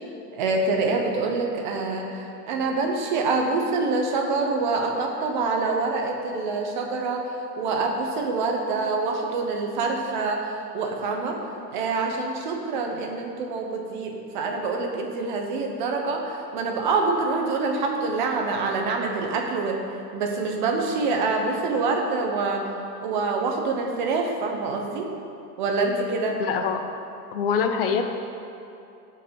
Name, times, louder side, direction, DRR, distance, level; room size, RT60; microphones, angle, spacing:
voice 1, 0.3-11.4 11.7-19.8 20.1-22.7 23.0-25.1 25.6-26.4, right 3 dB, 30° right, 2 dB, 1.0 m, -26 dB
voice 2, 26.4-26.8 27.3-28.0, left 6 dB, 35° left, 6 dB, 0.7 m, -24 dB
17.0 x 5.8 x 5.3 m, 2.7 s
hypercardioid pair, 170°, 50 cm